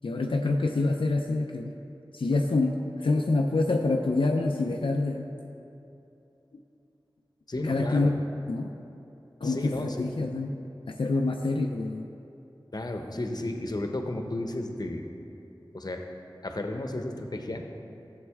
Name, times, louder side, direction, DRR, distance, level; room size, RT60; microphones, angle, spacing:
voice 1, 0.0-1.8 2.1-5.3 7.6-8.7 9.4-10.5 10.9-12.1, left 2 dB, 85° left, 2 dB, 0.5 m, -26 dB
voice 2, 7.5-8.1 9.4-10.3 12.7-15.1 15.7-16.0 16.4-17.7, left 1 dB, 50° left, 4 dB, 0.9 m, -33 dB
13.0 x 7.2 x 3.6 m, 2.8 s
wide cardioid pair, 45°, 9 cm